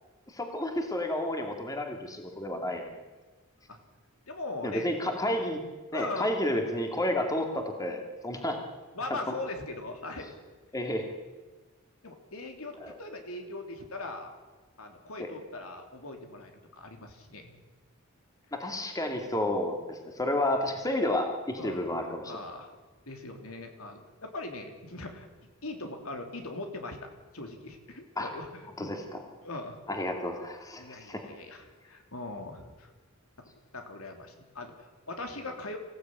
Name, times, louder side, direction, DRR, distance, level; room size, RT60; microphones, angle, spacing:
voice 1, 0.3-2.9 4.6-5.6 5.9-8.6 10.7-11.1 12.8-12.9 15.2-15.3 18.5-22.3 28.2-28.3 28.8-29.0 29.9-31.2, left 1 dB, 15° left, 3 dB, 2.4 m, -31 dB
voice 2, 4.3-4.9 5.9-6.3 8.9-10.3 12.0-14.3 14.8-17.5 21.6-21.8 22.3-22.7 23.1-25.3 25.6-29.0 29.4-29.8 30.7-32.9 33.4-35.8, left 2 dB, 75° left, 4 dB, 3.4 m, -40 dB
25.5 x 16.0 x 9.2 m, 1.3 s
head